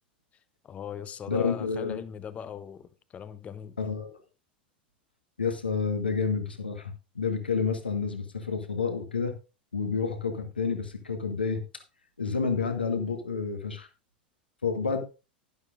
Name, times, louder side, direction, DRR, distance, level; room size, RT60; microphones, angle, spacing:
voice 1, 0.6-3.8, left 7 dB, 25° left, 0.7 m, -39 dB
voice 2, 1.3-2.0 3.8-4.2 5.4-9.3 9.7-11.6 12.2-13.9 14.6-15.0, left 5 dB, 80° left, 1.5 m, -29 dB
11.5 x 11.5 x 2.5 m
figure-of-eight pair, 85°, 5 cm